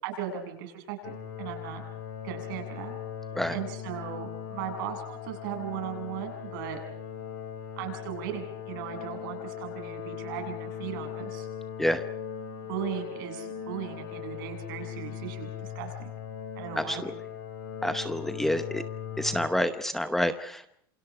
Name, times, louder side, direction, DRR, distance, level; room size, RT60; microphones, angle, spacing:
voice 1, 0.0-1.8 2.2-3.0 3.5-6.8 7.8-11.5 12.7-15.9 16.6-17.0, right 9 dB, 65° right, 4 dB, 7.6 m, -37 dB
sound 1, 1.0-19.5, left 9 dB, 75° left, 7.9 m, -39 dB
voice 2, 16.8-17.1 17.8-18.8 19.2-20.7, left 1 dB, 5° left, 9 dB, 0.9 m, -28 dB
28.0 x 27.0 x 5.0 m, 0.66 s
supercardioid pair, 160°, 12 cm